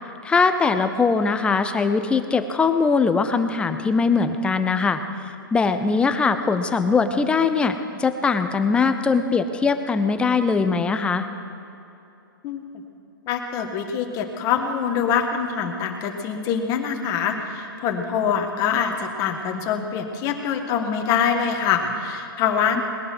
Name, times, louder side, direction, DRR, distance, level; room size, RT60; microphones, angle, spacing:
voice 1, 0.2-11.3 22.8-22.9, left 4 dB, 10° left, 9 dB, 0.6 m, -21 dB
voice 2, 13.3-22.8, left 7 dB, 30° left, 4 dB, 1.6 m, -24 dB
20.0 x 10.5 x 6.1 m, 2.8 s
hypercardioid pair, 150°, 12 cm